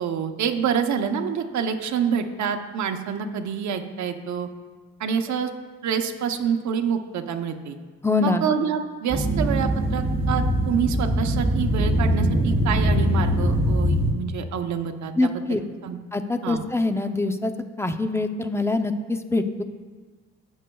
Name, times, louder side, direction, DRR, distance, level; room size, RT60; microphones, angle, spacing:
voice 1, 0.0-4.5 5.0-5.5 5.8-7.8 8.2-16.0 16.4-16.6, right 7 dB, 70° right, 6 dB, 0.9 m, -27 dB
voice 2, 8.0-8.4 15.2-15.6 16.1-17.5 17.8-19.6, left 2 dB, 10° left, 8 dB, 0.6 m, -24 dB
sound 1, 9.1-14.1, equal, 20° right, 2.5 m, -22 dB
17.0 x 6.4 x 2.3 m, 1.4 s
cardioid pair, 90°, 30 cm